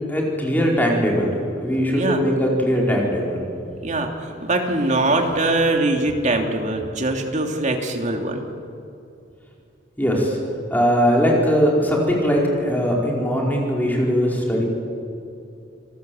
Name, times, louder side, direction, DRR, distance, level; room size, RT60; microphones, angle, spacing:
voice 1, 0.1-3.4 10.0-10.4 10.7-14.6, equal, 10° left, -2 dB, 4.9 m, -20 dB
voice 2, 1.9-2.3 3.8-8.5, right 2 dB, 40° right, 3 dB, 3.0 m, -22 dB
29.0 x 19.0 x 7.9 m, 2.6 s
head